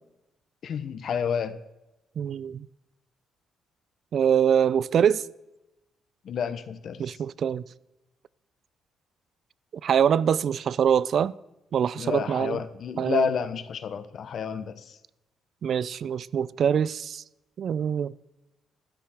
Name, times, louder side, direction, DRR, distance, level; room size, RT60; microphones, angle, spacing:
voice 1, 0.6-1.6 6.2-7.1 12.0-14.9, left 7 dB, 60° left, 0.7 m, -30 dB
voice 2, 2.2-2.7 4.1-5.2 7.0-7.6 9.8-11.3 11.7-12.6 13.0-13.3 15.6-17.2 17.6-18.1, right 8 dB, 60° right, 0.3 m, -24 dB
13.0 x 10.0 x 3.5 m
cardioid pair, 90°, 0 cm